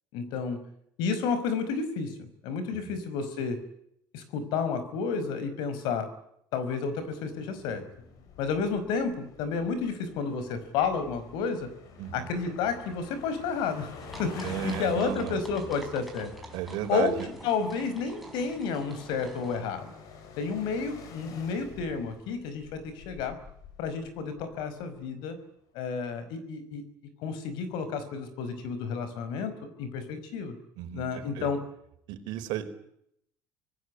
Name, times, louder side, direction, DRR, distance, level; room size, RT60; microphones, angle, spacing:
voice 1, 0.1-0.6 1.0-3.6 4.1-6.1 6.5-7.8 8.4-11.7 12.1-13.9 14.2-16.3 16.9-19.9 20.4-23.4 23.8-25.4 25.7-26.8 27.2-30.6 30.9-31.6, left 5 dB, 70° left, 12 dB, 5.4 m, -31 dB
sound 1, 7.0-25.1, left 5 dB, 50° left, 4.9 m, -48 dB
voice 2, 12.0-12.3 14.4-15.4 16.5-17.3 30.8-31.5 32.1-32.6, right 12 dB, 70° right, 8 dB, 4.5 m, -34 dB
sound 2, 14.0-19.6, right 1 dB, ahead, 4.9 m, -48 dB
26.0 x 19.0 x 9.8 m, 0.74 s
cardioid pair, 175°, 8 cm